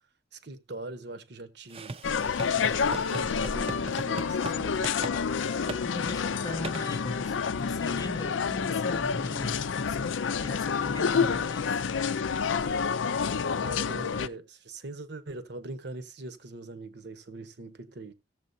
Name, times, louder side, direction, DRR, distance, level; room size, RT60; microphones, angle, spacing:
voice 1, 0.3-2.0 2.4-4.9 13.6-18.1, right 2 dB, 60° right, 0.9 m, -42 dB
sound 1, 1.7-4.6 4.8-5.2 5.7-5.8 6.6-6.8, right 3 dB, 30° right, 0.5 m, -38 dB
sound 2, 2.0-14.3, left 6 dB, 90° left, 0.5 m, -29 dB
voice 2, 5.8-10.1 10.4-11.8, left 1 dB, 20° left, 0.5 m, -39 dB
15.5 x 7.4 x 2.6 m
head